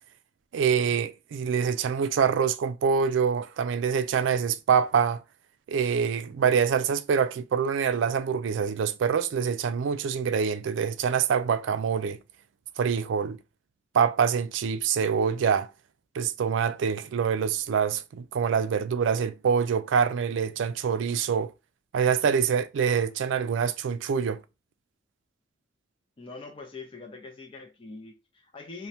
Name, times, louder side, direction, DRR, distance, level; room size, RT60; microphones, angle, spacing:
voice 1, 0.5-5.2 5.7-12.2 12.8-13.4 13.9-15.7 16.1-21.5 21.9-24.4, right 6 dB, 75° right, 0.3 m, -25 dB
voice 2, 26.2-28.9, left 3 dB, 30° left, 0.5 m, -43 dB
3.2 x 2.1 x 2.7 m
head